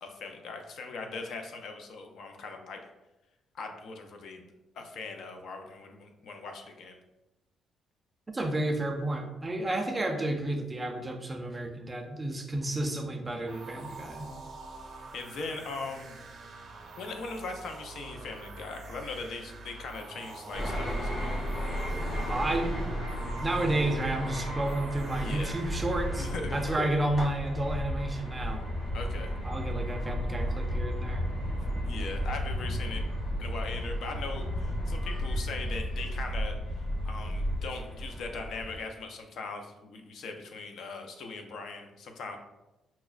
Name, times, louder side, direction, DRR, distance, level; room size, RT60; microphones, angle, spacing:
voice 1, 0.0-2.9 3.5-4.5 4.8-7.0 13.5-13.7 15.1-16.2 17.0-21.3 25.2-25.5 26.1-26.6 28.9-29.3 31.8-33.0 33.4-42.4, left 3 dB, 70° left, 4 dB, 0.5 m, -40 dB
voice 2, 8.3-14.3 22.3-22.9 23.4-28.7 29.4-31.3, right 1 dB, 20° right, 3 dB, 0.5 m, -31 dB
sound 1, 13.5-26.3, right 3 dB, 60° right, 0.6 m, -46 dB
sound 2, 20.5-38.8, equal, 45° left, 1.4 m, -33 dB
5.7 x 2.0 x 2.3 m, 1.0 s
cardioid pair, 110°, 0 cm